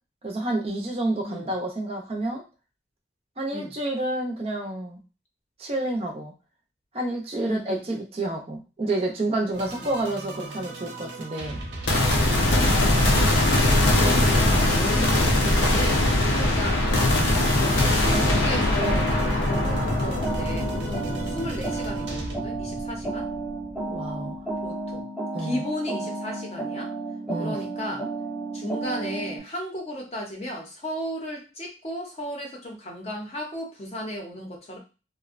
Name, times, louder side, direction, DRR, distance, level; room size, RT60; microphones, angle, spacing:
voice 1, 0.2-2.4 3.4-5.0 5.6-6.3 6.9-11.6 23.9-24.4 25.3-25.6 27.3-27.6, right 2 dB, 35° right, 1 dB, 0.5 m, -29 dB
voice 2, 7.4-8.0 9.7-9.9 12.2-13.4 13.9-16.0 16.4-16.8 17.3-23.3 24.6-25.0 25.4-26.9 27.4-28.1 28.5-34.8, equal, 35° left, 1 dB, 0.6 m, -35 dB
sound 1, 9.5-22.3, right 2 dB, 80° right, 0.7 m, -37 dB
sound 2, 11.9-23.2, left 1 dB, 90° left, 0.6 m, -22 dB
sound 3, 18.1-29.4, right 2 dB, 5° left, 0.8 m, -32 dB
2.5 x 2.1 x 2.4 m, 0.32 s
head